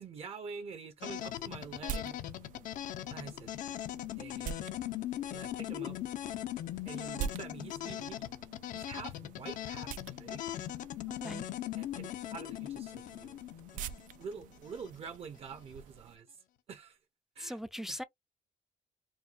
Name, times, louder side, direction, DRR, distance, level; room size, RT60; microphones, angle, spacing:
voice 1, 0.0-2.2 3.1-3.5 4.2-4.5 5.3-6.0 6.8-8.3 8.7-10.4 11.7-13.4 13.7-13.9 14.2-16.4 16.7-17.0 17.4-17.6 17.9-18.0, right 5 dB, 50° right, 0.7 m, -46 dB
sound 1, 1.0-14.9, left 12 dB, 75° left, 0.5 m, -40 dB
sound 2, 1.2-16.2, right 8 dB, 85° right, 0.4 m, -47 dB
voice 2, 11.1-11.5 17.4-18.0, equal, 5° right, 0.3 m, -40 dB
4.5 x 2.2 x 2.5 m
cardioid pair, 120°, 13 cm